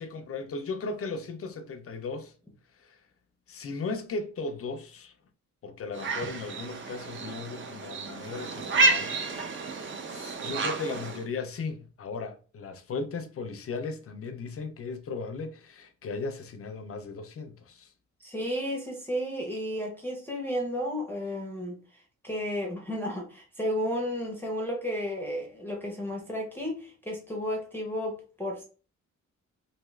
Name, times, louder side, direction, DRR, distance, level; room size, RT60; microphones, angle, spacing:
voice 1, 0.0-2.3 2.8-3.0 3.5-5.1 5.6-9.2 10.1-17.9, left 4 dB, 50° left, 0.5 m, -36 dB
sound 1, 5.9-11.2, right 2 dB, 40° right, 0.5 m, -30 dB
voice 2, 18.2-28.6, equal, 5° left, 0.6 m, -33 dB
2.6 x 2.3 x 3.1 m
wide cardioid pair, 135°, 31 cm